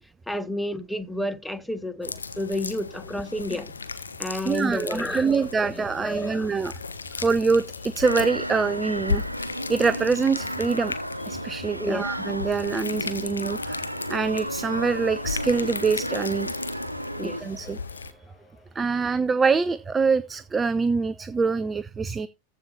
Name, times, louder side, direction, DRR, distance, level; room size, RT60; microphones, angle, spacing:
voice 1, 0.3-3.7 4.2-6.5 11.8-12.0 17.2-17.7, left 1 dB, ahead, 1.0 m, -31 dB
sound 1, 0.8-20.5, left 1 dB, 20° left, 4.4 m, -57 dB
sound 2, 2.0-18.1, left 4 dB, 75° left, 1.1 m, -36 dB
voice 2, 4.4-6.7 7.2-13.8 14.1-16.5 17.2-18.1 18.7-22.3, right 5 dB, 15° right, 0.5 m, -25 dB
sound 3, 8.0-17.4, equal, 90° right, 0.9 m, -33 dB
14.5 x 5.5 x 4.3 m
figure-of-eight pair, 90°, 0 cm